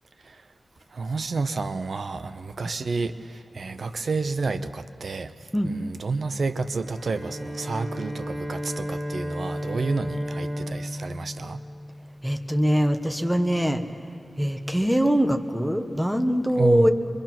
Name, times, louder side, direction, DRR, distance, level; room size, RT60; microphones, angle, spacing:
voice 1, 0.9-11.6 16.6-16.9, right 4 dB, 70° right, 11 dB, 0.7 m, -30 dB
Bowed string instrument, 6.8-12.2, equal, 25° right, 3.5 m, -33 dB
voice 2, 12.2-13.8 14.4-16.9, equal, ahead, 6 dB, 1.2 m, -22 dB
24.5 x 24.0 x 6.0 m, 2.8 s
wide cardioid pair, 105°, 0 cm